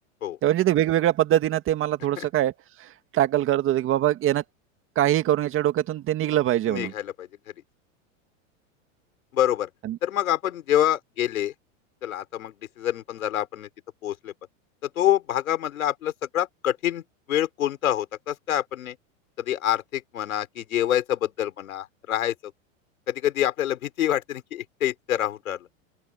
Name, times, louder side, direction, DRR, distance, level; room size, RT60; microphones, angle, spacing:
voice 1, 0.4-2.5 2.8-4.4 5.0-6.9 9.8-10.0, right 13 dB, 30° right, 2.0 m, -23 dB
voice 2, 6.7-7.3 9.3-9.7 10.0-11.5 12.0-13.7 14.0-14.3 14.8-17.0 17.3-19.0 19.4-22.3 23.1-25.6, left 11 dB, 85° left, 5.0 m, -26 dB
open air
supercardioid pair, 130°, 40 cm